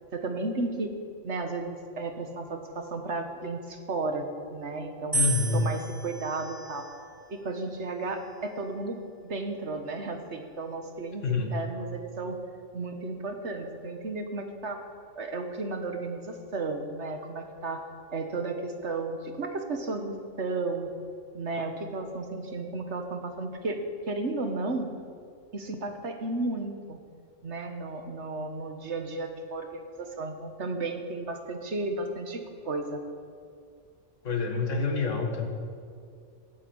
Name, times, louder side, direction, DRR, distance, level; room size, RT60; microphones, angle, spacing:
voice 1, 0.1-0.9 1.2-5.2 5.5-6.9 7.3-12.4 12.7-14.8 15.1-17.9 18.1-20.9 21.3-23.8 24.1-24.9 25.5-27.0 27.4-33.0, right 3 dB, 65° right, 6 dB, 1.7 m, -33 dB
voice 2, 5.1-5.6 11.2-11.5 34.2-35.5, left 4 dB, 85° left, 4 dB, 2.0 m, -27 dB
sound 1, 5.1-7.3 8.1-8.7, right 2 dB, 10° right, 2.5 m, -34 dB
16.5 x 8.6 x 8.8 m, 2.3 s
omnidirectional pair, 1.3 m